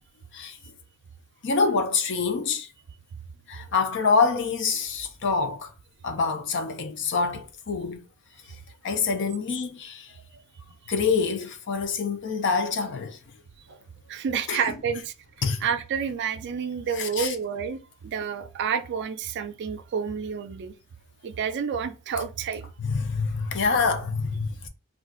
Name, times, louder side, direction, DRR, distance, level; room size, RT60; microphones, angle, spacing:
voice 1, 1.4-2.7 3.5-5.7 6.0-8.0 8.8-10.1 10.9-13.2 14.5-14.6 15.4-15.6 17.0-17.3 22.8-24.7, left 4 dB, 55° left, 0.5 m, -26 dB
voice 2, 14.1-15.1 15.6-20.7 21.2-22.6, right 7 dB, 50° right, 0.4 m, -29 dB
2.4 x 2.3 x 3.7 m
head